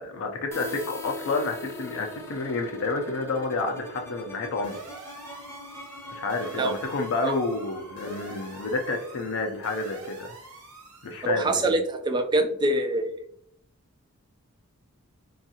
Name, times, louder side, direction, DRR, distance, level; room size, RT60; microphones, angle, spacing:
voice 1, 0.0-4.8 6.1-10.3 11.0-11.7, left 3 dB, 60° left, 3 dB, 0.4 m, -29 dB
sound 1, 0.5-10.1, left 1 dB, 10° left, 0.6 m, -42 dB
sound 2, 4.6-11.3, right 3 dB, 70° right, 0.7 m, -46 dB
voice 2, 11.2-13.2, right 2 dB, 20° right, 6 dB, 0.3 m, -25 dB
3.5 x 2.3 x 2.7 m, 0.65 s
head